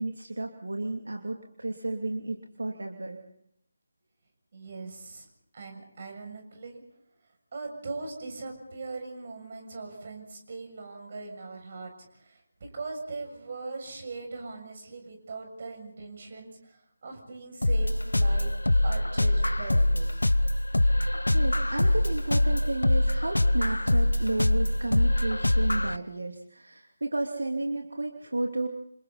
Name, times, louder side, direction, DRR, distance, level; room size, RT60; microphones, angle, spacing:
voice 1, 0.0-3.2 20.9-21.0 21.3-28.7, right 2 dB, 65° right, 3 dB, 2.8 m, -32 dB
voice 2, 4.5-5.3 5.5-6.8 7.5-18.5 18.8-20.2, right 3 dB, 40° right, 4 dB, 7.3 m, -40 dB
sound 1, 17.6-26.0, left 1 dB, 75° left, 1.1 m, -24 dB
29.0 x 28.0 x 4.2 m, 0.72 s
figure-of-eight pair, 155°, 0 cm